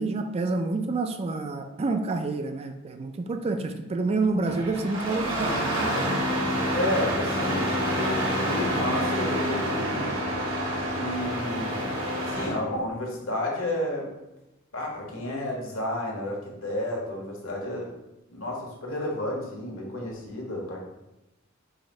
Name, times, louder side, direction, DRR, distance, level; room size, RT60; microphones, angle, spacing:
voice 1, 0.0-5.8, right 3 dB, 30° right, 7 dB, 0.4 m, -28 dB
Engine starting, 4.4-12.6, equal, 75° right, 1.1 m, -27 dB
voice 2, 6.7-10.1 10.9-11.9 12.3-14.1 14.7-17.9 18.3-20.8, left 1 dB, 85° left, -1 dB, 1.3 m, -31 dB
4.9 x 2.6 x 4.2 m, 0.93 s
head